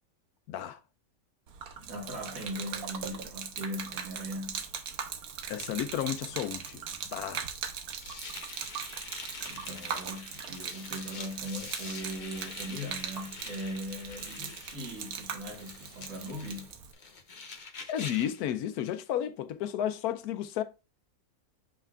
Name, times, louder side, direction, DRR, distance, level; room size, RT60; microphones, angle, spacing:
voice 1, 0.5-0.8 5.5-6.8 7.1-7.4 17.9-20.6, left 11 dB, 85° left, 1.1 m, -32 dB
Gurgling / Liquid, 1.5-16.9, right 7 dB, 85° right, 1.3 m, -40 dB
voice 2, 1.8-4.6 9.5-16.7, equal, 65° right, 2.2 m, -39 dB
sound 1, 8.0-18.4, left 4 dB, 40° left, 0.8 m, -45 dB
7.4 x 5.6 x 2.4 m
omnidirectional pair, 1.6 m